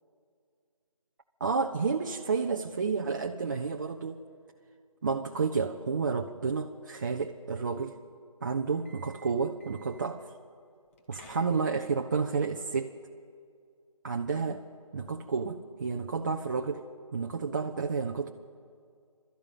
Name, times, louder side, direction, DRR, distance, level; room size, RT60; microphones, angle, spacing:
voice 1, 1.4-4.2 5.0-8.0 8.4-10.2 11.1-12.9 14.0-14.6 14.9-16.8 17.1-18.3, right 5 dB, 35° right, 3 dB, 0.8 m, -30 dB
sound 1, 8.7-10.2 10.9-11.9, equal, 25° left, 1.6 m, -55 dB
28.5 x 13.0 x 9.1 m, 2.2 s
figure-of-eight pair, 160°, 18 cm